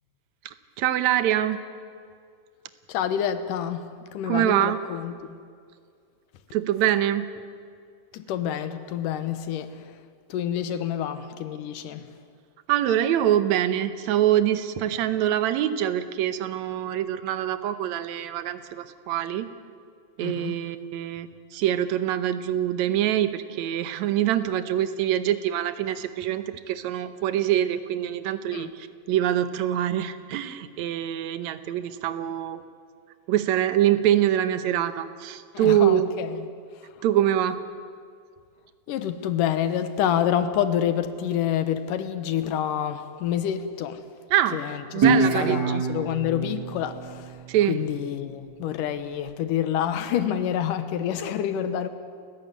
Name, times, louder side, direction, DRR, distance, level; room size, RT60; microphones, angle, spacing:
voice 1, 0.8-1.6 4.3-4.8 6.5-7.3 12.7-19.5 20.2-32.6 33.3-36.1 37.0-37.6 44.3-44.6 44.9-45.8 47.5-47.8, right 11 dB, 70° right, 11 dB, 1.9 m, -24 dB
voice 2, 2.9-5.4 8.1-10.0 10.3-12.1 20.2-20.6 28.5-28.7 35.5-36.5 36.8-37.0 38.9-44.0 44.5-51.9, left 9 dB, 70° left, 11 dB, 2.5 m, -28 dB
Guitar, 45.0-48.2, right 4 dB, 35° right, 2.3 m, -26 dB
30.0 x 14.5 x 9.3 m, 2.2 s
omnidirectional pair, 4.2 m